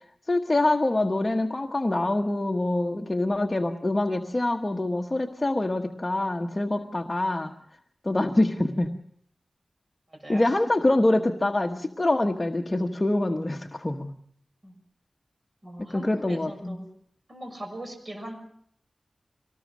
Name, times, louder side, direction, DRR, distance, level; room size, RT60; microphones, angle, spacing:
voice 1, 0.3-7.5 8.0-8.9 10.3-14.1 15.8-16.8, left 2 dB, 30° left, 3 dB, 1.2 m, -25 dB
voice 2, 10.1-10.5 14.6-14.7 15.6-16.9 17.3-18.3, right 1 dB, 40° right, 4 dB, 6.5 m, -40 dB
24.0 x 19.5 x 6.2 m, 0.68 s
wide cardioid pair, 80°, 0 cm